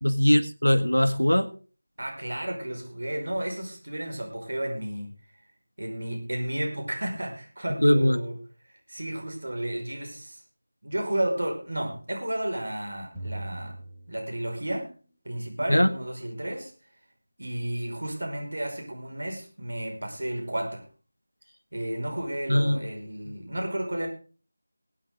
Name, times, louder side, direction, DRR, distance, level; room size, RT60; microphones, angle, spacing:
voice 1, 0.0-1.5 7.8-8.2 15.7-15.9 22.5-22.9, equal, 90° left, 11 dB, 1.4 m, -21 dB
voice 2, 2.0-5.1 5.8-8.4 8.7-10.4 10.8-13.8 14.1-14.9 15.3-16.7 17.4-20.8 21.7-24.1, right 1 dB, 65° right, 2 dB, 5.3 m, -32 dB
sound 1, 13.1-14.9, right 1 dB, ahead, 4.5 m, -39 dB
21.5 x 8.7 x 3.8 m, 0.37 s
figure-of-eight pair, 170°, 0 cm